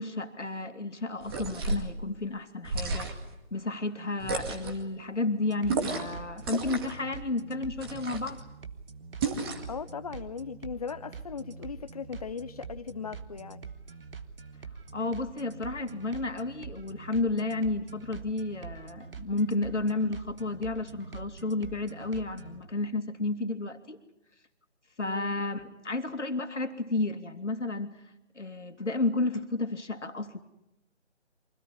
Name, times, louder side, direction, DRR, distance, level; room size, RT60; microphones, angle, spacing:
voice 1, 0.0-3.2 3.5-8.4 14.9-24.0 25.0-28.0 28.4-30.4, left 2 dB, 80° left, 7 dB, 2.6 m, -32 dB
sound 1, 1.2-1.9 2.6-3.3 4.2-4.8 5.7-6.2 6.4-7.0 7.8-8.4 9.2-9.7, right 3 dB, 20° right, 2.1 m, -32 dB
sound 2, 5.5-22.6, right 5 dB, 50° right, 1.7 m, -45 dB
voice 2, 9.7-13.6 25.0-25.3, left 6 dB, 35° left, 13 dB, 1.0 m, -38 dB
25.0 x 17.5 x 9.9 m, 0.90 s
figure-of-eight pair, 155°, 35 cm